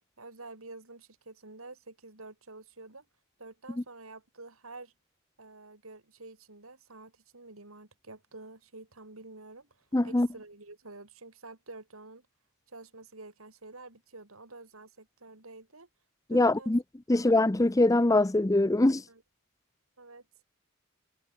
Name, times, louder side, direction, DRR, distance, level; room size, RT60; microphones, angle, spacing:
voice 1, 0.2-3.0 3.4-4.9 5.4-9.7 10.0-12.2 12.7-15.9 16.3-16.7 17.1-17.3 19.1-19.2 20.0-20.2, right 3 dB, 85° right, 4.2 m, -48 dB
voice 2, 9.9-10.3 16.3-16.8 17.1-19.0, left 2 dB, 15° left, 0.6 m, -23 dB
head